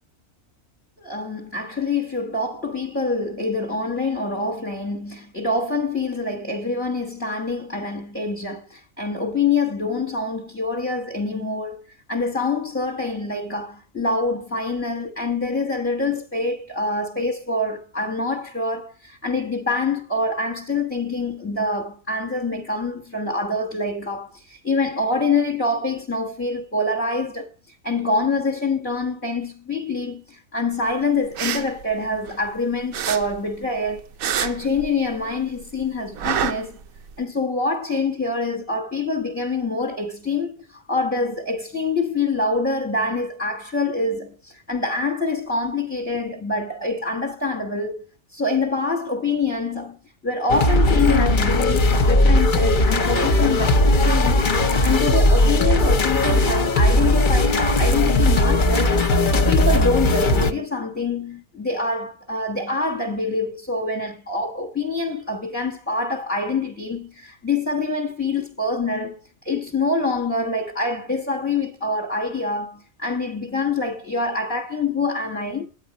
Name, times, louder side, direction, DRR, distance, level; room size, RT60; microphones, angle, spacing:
voice 1, 1.0-11.8 12.1-34.1 34.4-36.8 37.2-48.0 48.3-59.0 59.3-75.7, left 3 dB, 10° left, 1.1 m, -25 dB
sound 1, 31.2-32.6 32.9-35.3 35.6-37.2, right 9 dB, 90° right, 1.1 m, -28 dB
sound 2, 50.5-60.5, left 1 dB, 40° left, 0.9 m, -18 dB
9.8 x 8.9 x 4.0 m
omnidirectional pair, 1.4 m